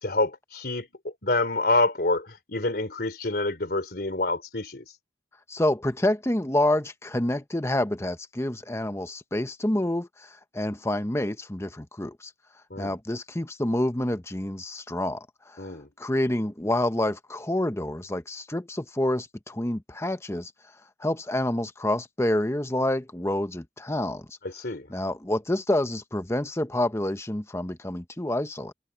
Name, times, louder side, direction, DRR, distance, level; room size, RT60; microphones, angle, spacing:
voice 1, 0.0-4.8 12.7-13.0 15.6-15.9 24.4-24.9, left 2 dB, 60° left, 3.7 m, -27 dB
voice 2, 5.5-12.3 12.8-20.5 21.0-24.4 24.9-28.7, left 1 dB, 15° left, 1.0 m, -28 dB
head